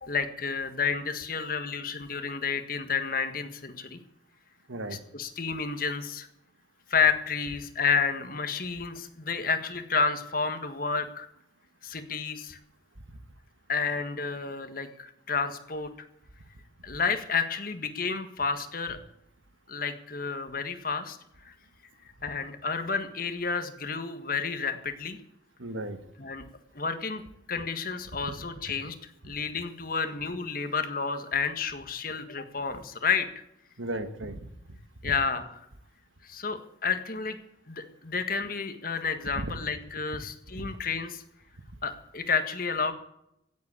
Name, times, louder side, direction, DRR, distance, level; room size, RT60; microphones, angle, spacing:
voice 1, 0.0-4.0 5.1-6.3 6.9-11.3 11.8-12.6 13.7-15.9 16.8-19.0 19.7-21.2 21.4-21.5 22.2-25.2 26.2-26.4 26.7-27.2 27.5-29.0 29.2-33.3 35.0-35.5 36.2-37.4 37.7-41.2 41.8-42.9, left 5 dB, 45° left, 9 dB, 1.7 m, -30 dB
voice 2, 4.7-5.0 13.1-13.2 25.6-26.0 28.2-28.4 33.8-34.4 34.7-34.8 35.0-35.1 39.3-39.5 40.6-40.7, right 1 dB, 85° right, 9 dB, 1.8 m, -35 dB
16.5 x 8.3 x 8.6 m, 0.79 s
head